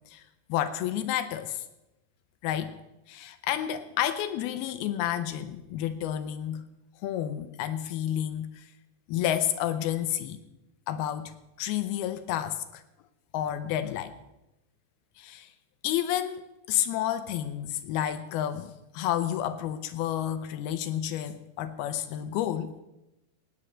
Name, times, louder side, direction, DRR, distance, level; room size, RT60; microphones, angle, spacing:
voice 1, 0.5-1.6 2.4-2.8 3.1-6.7 7.0-8.7 9.1-10.4 10.9-12.8 13.3-14.1 15.2-15.5 15.8-22.7, left 11 dB, 80° left, 10 dB, 2.4 m, -30 dB
18.0 x 8.9 x 6.3 m, 0.94 s
omnidirectional pair, 4.9 m